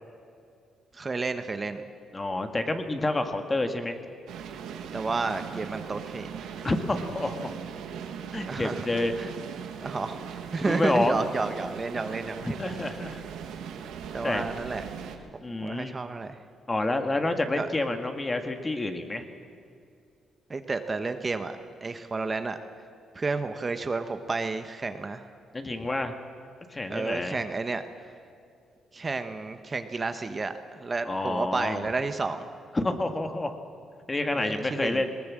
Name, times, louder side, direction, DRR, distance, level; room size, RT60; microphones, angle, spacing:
voice 1, 0.9-1.8 4.9-6.3 8.5-8.8 9.2-9.3 9.8-12.6 14.1-14.8 15.6-16.4 17.5-17.7 20.5-21.5 21.8-22.6 23.1-25.2 26.9-27.8 28.9-32.5 34.3-35.0, right 3 dB, 30° right, 8 dB, 1.1 m, -31 dB
voice 2, 2.1-4.0 6.6-7.6 8.3-9.1 10.6-11.3 12.4-13.2 14.2-14.5 15.4-15.9 16.7-19.2 25.5-26.1 26.7-27.4 31.0-31.8 32.7-33.6 34.1-35.1, left 2 dB, 20° left, 7 dB, 1.9 m, -28 dB
sound 1, 4.3-15.2, right 7 dB, 85° right, 1.8 m, -39 dB
20.0 x 18.5 x 7.6 m, 2.4 s
cardioid pair, 90°, 0 cm